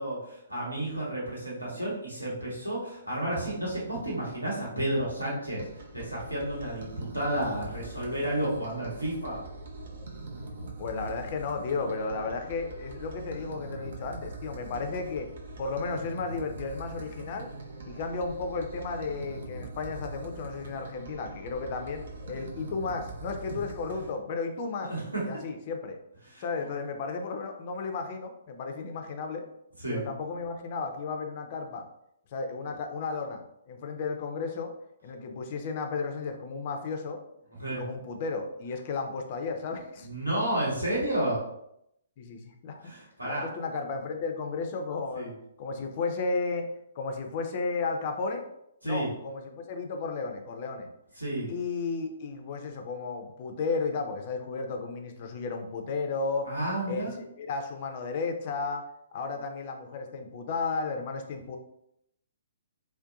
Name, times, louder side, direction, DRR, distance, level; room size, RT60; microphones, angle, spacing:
voice 1, 0.0-9.4 24.9-25.3 26.2-26.4 29.8-30.0 37.6-37.9 40.0-41.4 42.8-43.5 45.1-45.3 48.8-49.1 51.2-51.5 56.4-57.2, right 1 dB, 90° right, -5 dB, 1.1 m, -31 dB
sound 1, 5.6-24.1, right 2 dB, 55° right, 0.5 m, -42 dB
voice 2, 10.8-15.3 15.6-17.5 17.8-24.9 25.2-26.0 26.4-29.4 29.9-31.9 32.3-34.7 35.0-37.2 37.7-40.1 42.2-42.8 43.2-45.3 45.6-48.5 48.8-50.9 51.5-56.5 56.9-57.1 57.4-58.8 59.1-61.6, left 4 dB, 40° left, 4 dB, 0.4 m, -33 dB
2.5 x 2.1 x 2.4 m, 0.78 s
figure-of-eight pair, 125°, 0 cm